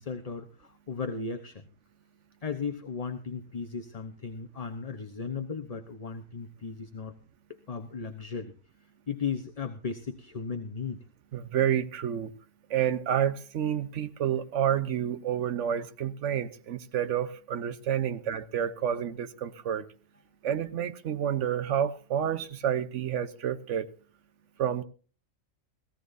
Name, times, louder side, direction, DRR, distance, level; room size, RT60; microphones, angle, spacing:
voice 1, 0.0-1.7 2.4-7.1 7.5-8.5 9.1-11.0, left 5 dB, 30° left, 0.8 m, -36 dB
voice 2, 11.3-12.3 12.7-19.9 20.4-23.9 24.6-24.8, right 9 dB, 65° right, 1.2 m, -29 dB
18.0 x 15.5 x 2.6 m
omnidirectional pair, 1.4 m